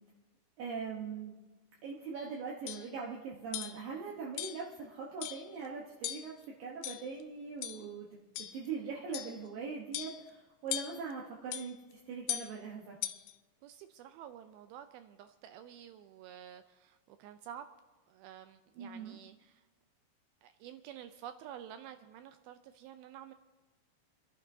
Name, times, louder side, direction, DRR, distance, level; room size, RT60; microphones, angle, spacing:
voice 1, 0.6-1.4 1.8-13.0 18.8-19.2, right 5 dB, 70° right, -3 dB, 2.5 m, -41 dB
sound 1, 2.2-2.3 2.7-2.9 3.5-3.8 4.4-4.7 5.2-5.5 6.0-6.4 6.8-7.2 7.6-7.9 8.4-8.7 9.1-9.4 9.9-10.3 10.7-11.1 11.5-11.7 12.3-12.6 13.0-13.3, left 13 dB, 90° left, 2.1 m, -39 dB
voice 2, 13.6-17.7 18.1-19.7 20.4-23.3, right 10 dB, 85° right, 9 dB, 2.2 m, -50 dB
29.5 x 11.5 x 2.7 m, 1.1 s
omnidirectional pair, 4.8 m